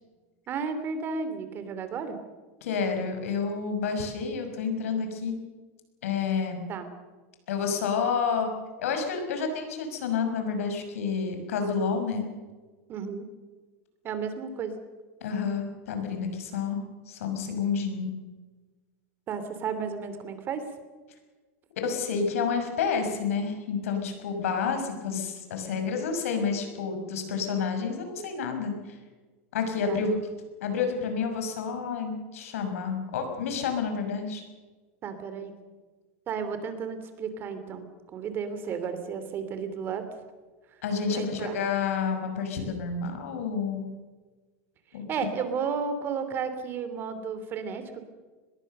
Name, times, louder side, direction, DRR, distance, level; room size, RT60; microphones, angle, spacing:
voice 1, 0.5-2.2 6.7-6.9 12.9-13.3 14.0-14.7 19.3-20.6 29.9-30.1 35.0-35.5 36.3-40.0 41.1-41.6 45.1-48.0, right 6 dB, 30° right, 9 dB, 2.9 m, -33 dB
voice 2, 2.6-5.4 6.0-6.6 7.5-8.5 8.8-12.3 15.2-18.1 21.8-29.0 29.5-30.2 30.6-34.4 40.8-43.9 44.9-45.3, left 5 dB, 90° left, 6 dB, 5.9 m, -29 dB
23.5 x 21.0 x 6.7 m, 1.3 s
supercardioid pair, 150°, 7 cm